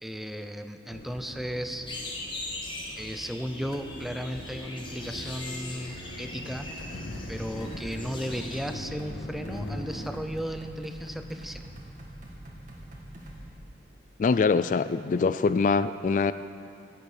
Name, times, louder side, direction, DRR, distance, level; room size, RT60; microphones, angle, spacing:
voice 1, 0.0-1.9 3.0-6.7 7.3-11.6, equal, ahead, 7 dB, 0.6 m, -35 dB
sound 1, 0.9-10.2, left 1 dB, 75° left, 1.4 m, -42 dB
sound 2, 1.9-8.8, left 2 dB, 30° left, 1.6 m, -41 dB
sound 3, 6.2-13.5, right 1 dB, 45° right, 2.3 m, -44 dB
voice 2, 14.2-16.3, left 4 dB, 45° left, 14 dB, 0.3 m, -23 dB
15.5 x 11.0 x 6.5 m, 2.5 s
head